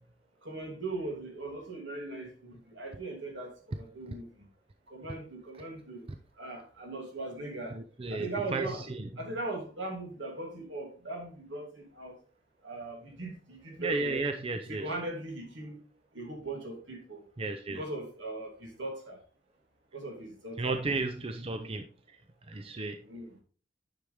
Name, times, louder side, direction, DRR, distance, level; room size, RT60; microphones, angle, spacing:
voice 1, 0.4-4.3 4.9-6.1 6.4-7.7 8.1-8.8 9.2-12.1 12.6-14.2 14.7-15.8 16.1-17.2 17.7-19.2 19.9-20.8 23.1-23.3, right 2 dB, 75° right, 2 dB, 2.9 m, -39 dB
voice 2, 7.7-9.1 13.8-14.9 17.4-17.8 20.6-21.8 22.5-23.0, right 3 dB, 30° right, 7 dB, 0.5 m, -33 dB
10.0 x 6.4 x 3.4 m, 0.39 s
head